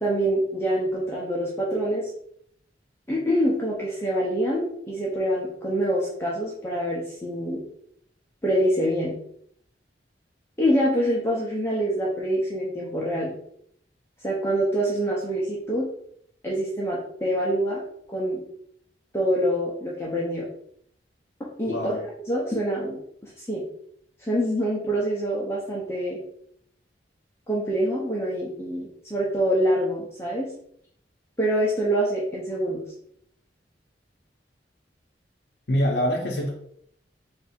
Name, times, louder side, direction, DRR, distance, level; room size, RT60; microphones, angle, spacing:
voice 1, 0.0-2.1 3.1-7.6 8.4-9.1 10.6-13.3 14.2-15.8 16.4-17.8 18.1-18.4 19.1-20.5 21.6-23.0 23.4-23.6 24.3-26.2 27.5-30.5 31.4-32.8, equal, 15° left, -5 dB, 0.7 m, -25 dB
voice 2, 21.7-22.0 35.7-36.5, equal, 65° left, -3 dB, 0.7 m, -24 dB
3.5 x 2.7 x 4.2 m, 0.67 s
head